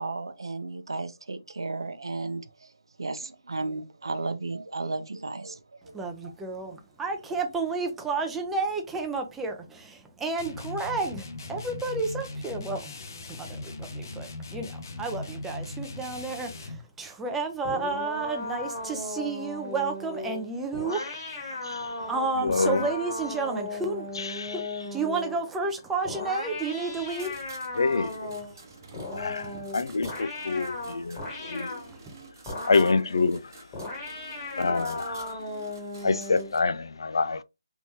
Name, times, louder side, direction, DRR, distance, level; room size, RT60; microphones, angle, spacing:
voice 1, 0.0-2.7 3.0-6.0 6.2-6.3, right 3 dB, 85° right, 0.6 m, -34 dB
voice 2, 5.9-12.9 13.3-21.7 22.0-24.2 24.5-27.3 29.5-29.6 32.1-32.2, right 3 dB, 5° right, 0.6 m, -31 dB
sound 1, 10.4-16.9, left 2 dB, 50° left, 0.8 m, -39 dB
sound 2, 17.6-25.5 26.0-28.6 28.9-31.9 32.5-33.1 33.7-36.6, left 2 dB, 20° left, 1.3 m, -36 dB
voice 3, 21.6-22.1 22.4-22.9 24.1-24.9 27.7-28.4 29.1-33.9 34.5-37.4, left 4 dB, 75° left, 0.4 m, -28 dB
sound 3, 26.9-36.6, right 4 dB, 50° right, 1.0 m, -50 dB
3.5 x 2.9 x 2.8 m
hypercardioid pair, 160°, 2 cm